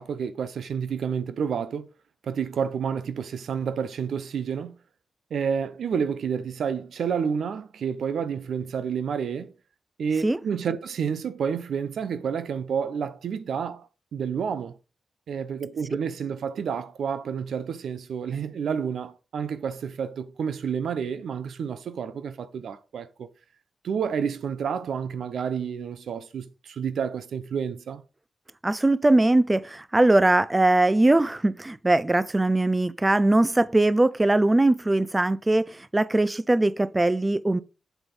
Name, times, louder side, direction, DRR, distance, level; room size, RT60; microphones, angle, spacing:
voice 1, 0.0-1.9 2.2-4.8 5.3-9.5 10.0-14.8 15.3-23.3 23.8-28.0, right 7 dB, 90° right, 0.6 m, -29 dB
voice 2, 28.6-37.6, right 2 dB, 20° right, 0.5 m, -21 dB
8.1 x 4.4 x 5.3 m
cardioid pair, 65°, 0 cm